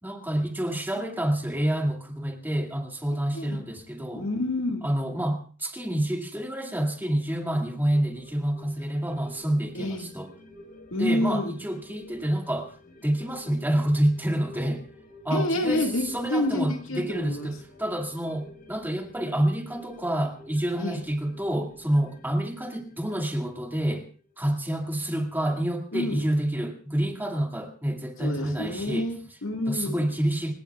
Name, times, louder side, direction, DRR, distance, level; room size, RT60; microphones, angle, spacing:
voice 1, 0.0-4.3 4.8-10.3 11.0-12.7 13.0-14.8 15.2-24.1 24.4-29.1 29.7-30.5, right 1 dB, 10° right, 3 dB, 2.2 m, -28 dB
voice 2, 3.3-3.7 4.2-4.9 9.7-10.1 10.9-11.6 15.3-17.5 20.8-21.0 25.9-26.2 28.2-30.1, left 1 dB, 85° left, 4 dB, 2.0 m, -28 dB
sound 1, 7.9-24.7 25.0-25.1, left 1 dB, 50° left, 5.5 m, -50 dB
28.0 x 17.5 x 2.4 m, 0.38 s
head